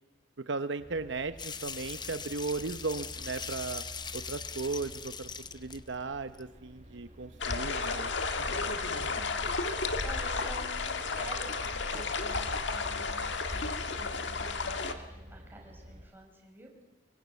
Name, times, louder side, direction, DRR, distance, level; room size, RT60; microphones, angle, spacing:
voice 1, 0.5-3.8 4.1-8.1, right 3 dB, 70° right, 10 dB, 0.9 m, -36 dB
sound 1, 0.8-16.1, equal, 40° right, 4.5 m, -50 dB
sound 2, 1.4-5.9 6.3-6.4 7.5-7.6 7.8-7.9, left 6 dB, 25° left, 0.8 m, -41 dB
sound 3, 7.4-14.9, left 4 dB, 70° left, 1.8 m, -33 dB
voice 2, 9.0-9.5 10.0-16.7, right 1 dB, 10° right, 0 dB, 5.9 m, -49 dB
25.5 x 23.0 x 8.3 m, 1.2 s
head